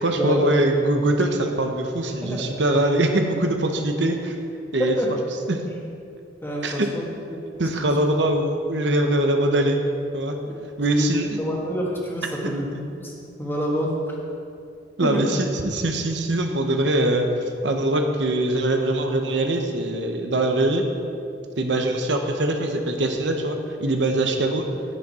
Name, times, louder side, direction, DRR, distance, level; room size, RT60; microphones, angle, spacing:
voice 1, 0.0-4.3 4.7-5.0 5.5-5.6 6.6-6.8 7.6-9.8 10.1-10.4 10.8-11.4 15.0-17.3 17.6-20.8 21.6-24.6, right 1 dB, 75° right, 4 dB, 1.0 m, -22 dB
voice 2, 2.2-2.6 4.8-5.1 6.4-7.0 7.3-7.4 10.9-13.1 13.4-14.1 15.0-15.3, equal, 15° left, -3 dB, 1.7 m, -27 dB
10.5 x 9.9 x 4.3 m, 2.5 s
head